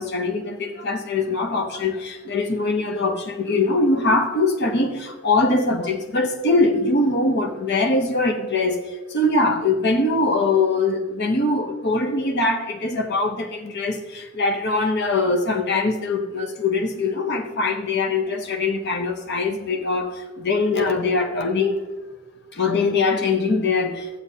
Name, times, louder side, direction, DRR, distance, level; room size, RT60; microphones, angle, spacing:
voice 1, 0.0-21.8 22.5-24.2, left 3 dB, 50° left, 4 dB, 0.8 m, -22 dB
13.5 x 8.6 x 2.7 m, 1.3 s
head